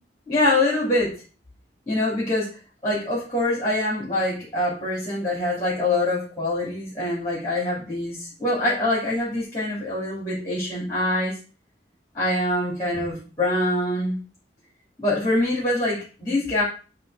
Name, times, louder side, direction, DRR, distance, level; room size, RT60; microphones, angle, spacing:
voice 1, 0.3-1.2 1.9-2.5 2.8-11.4 12.1-14.2 15.0-16.6, left 1 dB, 15° left, -6 dB, 2.9 m, -24 dB
9.6 x 3.4 x 6.3 m, 0.36 s
head